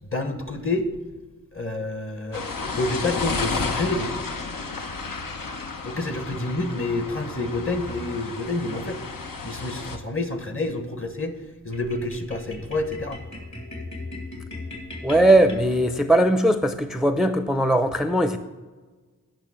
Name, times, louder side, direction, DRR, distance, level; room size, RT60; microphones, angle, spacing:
voice 1, 0.0-0.9 1.5-4.1 5.8-9.0 9.4-13.2, left 2 dB, 40° left, 8 dB, 1.2 m, -28 dB
sound 1, 2.3-10.0, left 4 dB, 80° left, 0.9 m, -32 dB
sound 2, 11.7-16.2, left 2 dB, 55° left, 2.7 m, -38 dB
voice 2, 15.0-18.4, right 1 dB, ahead, 9 dB, 0.5 m, -19 dB
8.9 x 5.8 x 7.3 m, 1.3 s
wide cardioid pair, 60°, 33 cm